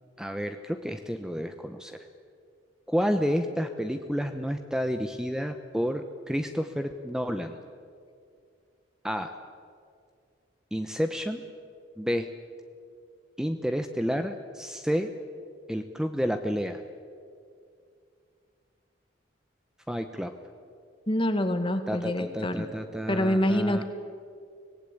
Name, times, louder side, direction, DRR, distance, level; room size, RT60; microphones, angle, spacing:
voice 1, 0.2-2.0 2.9-7.6 9.0-9.4 10.7-11.4 12.0-12.3 13.4-15.1 15.7-16.8 19.9-20.3 21.9-23.8, equal, 5° right, 7 dB, 0.8 m, -30 dB
voice 2, 21.1-22.7 23.1-23.8, left 1 dB, 30° left, 8 dB, 1.9 m, -26 dB
25.0 x 19.0 x 8.5 m, 2.3 s
head